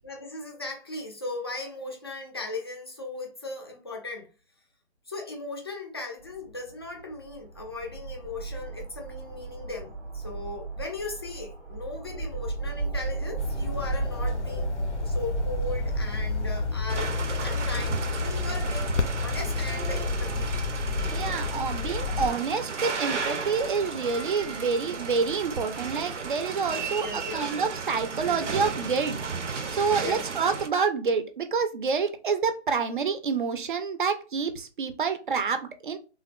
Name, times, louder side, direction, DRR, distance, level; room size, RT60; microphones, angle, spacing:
voice 1, 0.0-4.3 5.1-14.7 15.0-20.5 26.7-27.5 30.0-30.2, left 2 dB, 25° left, 0.4 m, -38 dB
sound 1, 6.2-16.7, right 4 dB, ahead, 0.7 m, -34 dB
sound 2, 13.4-22.3, left 5 dB, 85° left, 0.6 m, -30 dB
sound 3, 16.9-30.7, right 5 dB, 90° right, 0.6 m, -34 dB
voice 2, 21.1-29.2 29.7-36.0, right 5 dB, 45° right, 0.5 m, -28 dB
3.3 x 2.2 x 2.2 m
figure-of-eight pair, 150°, 35 cm